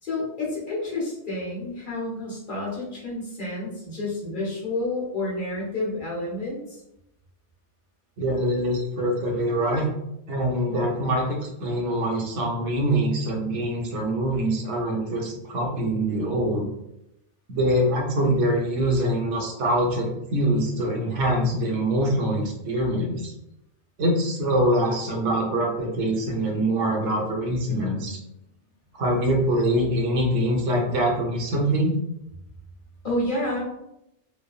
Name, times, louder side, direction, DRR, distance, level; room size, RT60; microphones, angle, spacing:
voice 1, 0.0-6.8 33.0-33.7, left 2 dB, 45° left, -5 dB, 1.1 m, -29 dB
voice 2, 8.2-9.9 10.3-16.7 17.5-23.3 24.0-28.2 28.9-31.9, right 1 dB, 80° right, 0 dB, 1.0 m, -24 dB
3.1 x 2.1 x 2.3 m, 0.84 s
omnidirectional pair, 1.2 m